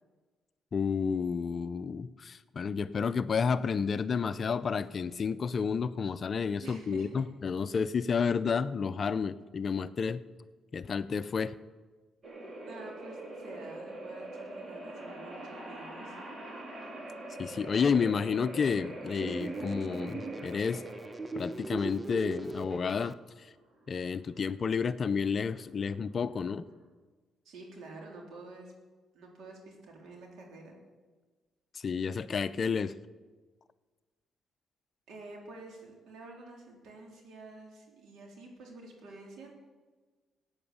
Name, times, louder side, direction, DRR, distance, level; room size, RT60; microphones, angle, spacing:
voice 1, 0.7-10.2 10.7-11.5 17.4-20.8 21.4-23.2 23.9-26.7 31.8-32.9, left 6 dB, 45° left, 14 dB, 0.6 m, -30 dB
voice 2, 6.6-7.1 12.6-16.2 27.5-28.7 29.1-30.7 35.1-39.5, right 2 dB, 75° right, 0 dB, 3.8 m, -49 dB
sound 1, 12.2-26.8, right 1 dB, 40° right, 3.8 m, -44 dB
sound 2, 19.1-23.1, right 2 dB, 15° right, 0.7 m, -39 dB
16.5 x 8.9 x 7.1 m, 1.3 s
cardioid pair, 90°, 0 cm